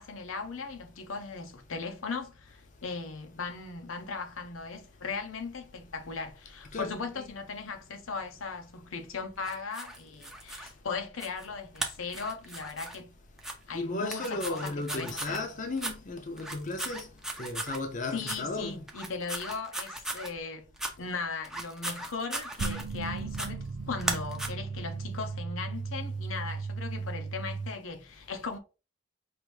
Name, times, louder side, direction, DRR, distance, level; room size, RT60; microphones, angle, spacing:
voice 1, 0.0-13.1 13.7-15.4 18.1-20.7 21.0-28.6, left 4 dB, 85° left, 0.7 m, -38 dB
voice 2, 6.7-7.3 13.7-17.1 17.4-18.8, left 2 dB, 40° left, 0.6 m, -35 dB
sound 1, 9.4-10.7 11.2-11.5 11.8-13.0 13.4-13.5 14.1-15.4 15.8-16.0 16.4-17.8 18.2-18.4 18.9-20.3 20.8-20.9 21.4-23.0 23.3-23.5 24.0-24.5, right 1 dB, ahead, 0.5 m, -37 dB
sound 2, 22.6-27.7, right 4 dB, 90° right, 0.6 m, -36 dB
4.8 x 2.6 x 3.2 m
head